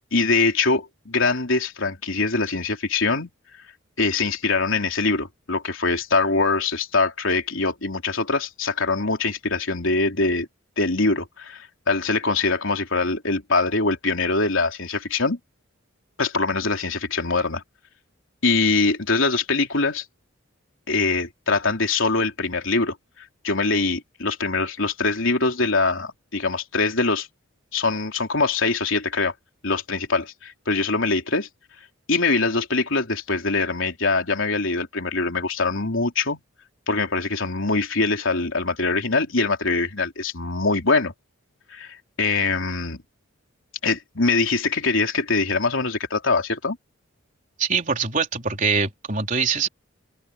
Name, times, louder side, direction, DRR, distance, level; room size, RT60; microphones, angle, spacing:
voice 1, 0.1-3.3 4.0-10.5 10.8-15.4 16.2-17.6 18.4-20.1 20.9-27.3 27.7-29.3 29.6-31.5 32.1-36.4 36.9-41.1 41.7-43.0 43.8-46.8, left 3 dB, 70° left, 3.5 m, -23 dB
voice 2, 47.6-49.7, right 5 dB, 40° right, 3.9 m, -23 dB
open air
head